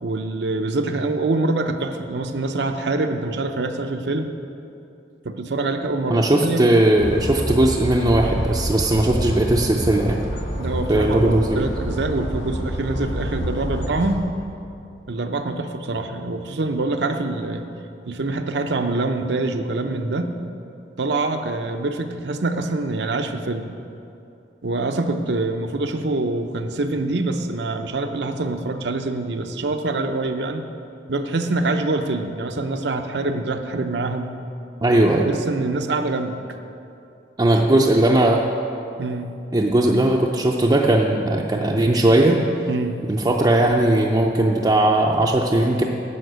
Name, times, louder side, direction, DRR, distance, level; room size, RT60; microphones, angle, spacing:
voice 1, 0.0-4.4 5.2-6.7 10.6-14.2 15.1-17.7 18.1-20.3 21.0-23.7 24.6-30.6 31.1-34.3 35.2-36.4 39.0-39.3 42.7-43.0, right 2 dB, 65° right, 6 dB, 0.7 m, -25 dB
voice 2, 6.1-10.2 10.9-11.7 34.8-35.3 37.4-38.4 39.5-42.4 43.1-45.8, right 1 dB, 20° right, -2 dB, 0.5 m, -18 dB
sound 1, 7.0-14.2, equal, 70° left, 1.5 m, -28 dB
11.0 x 5.9 x 7.9 m, 2.7 s
head